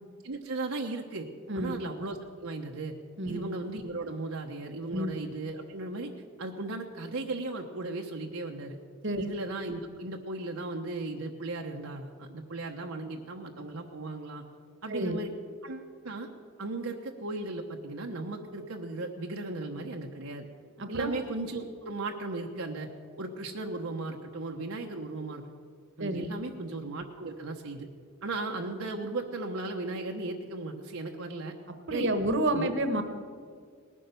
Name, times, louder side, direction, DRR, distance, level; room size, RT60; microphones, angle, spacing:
voice 1, 0.2-1.3 1.5-2.9 3.3-6.1 6.4-8.8 9.2-14.4 14.8-15.3 15.6-16.3 16.6-20.5 20.9-22.9 23.2-25.4 26.0-27.9 28.2-31.5 31.9-32.1 32.5-32.7, right 2 dB, 75° right, 1 dB, 1.0 m, -36 dB
voice 2, 14.9-15.2 20.8-21.1 26.0-26.3 31.9-33.0, right 1 dB, 55° right, 8 dB, 1.3 m, -29 dB
19.0 x 10.0 x 6.9 m, 2.1 s
head